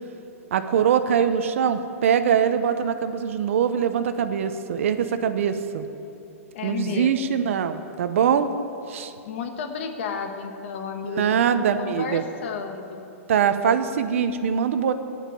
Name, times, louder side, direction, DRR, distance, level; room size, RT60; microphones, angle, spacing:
voice 1, 0.5-5.9 6.6-8.5 8.9-9.1 11.1-12.2 13.3-14.9, right 8 dB, 60° right, 9 dB, 0.9 m, -23 dB
voice 2, 6.5-7.1 9.2-13.0, left 6 dB, 50° left, 5 dB, 1.4 m, -32 dB
16.5 x 5.8 x 8.5 m, 2.7 s
hypercardioid pair, 155°, 8 cm